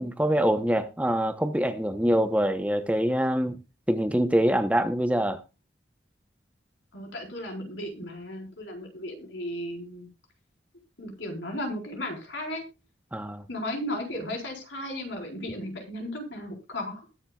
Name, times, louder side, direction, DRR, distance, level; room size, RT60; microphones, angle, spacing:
voice 1, 0.0-3.6 3.9-5.4 13.1-13.5, equal, 5° right, 0.9 m, -24 dB
voice 2, 6.9-10.1 11.0-12.6 13.5-17.1, left 1 dB, 85° left, 4.4 m, -35 dB
21.0 x 7.3 x 2.4 m
head